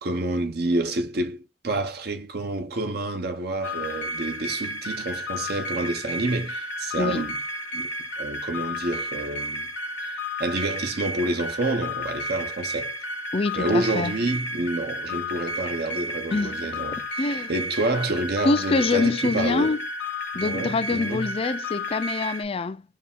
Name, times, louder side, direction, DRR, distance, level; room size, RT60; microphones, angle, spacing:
voice 1, 0.0-7.4 7.7-7.9 8.2-9.7 10.4-13.0 13.5-19.7 20.3-21.3, right 2 dB, 60° right, 0.8 m, -28 dB
sound 1, 3.6-22.4, left 1 dB, 75° left, 1.0 m, -32 dB
voice 2, 13.3-14.1 16.3-16.6 16.9-17.5 18.4-19.9 20.3-22.8, left 3 dB, 35° left, 0.4 m, -25 dB
4.8 x 2.4 x 3.5 m
head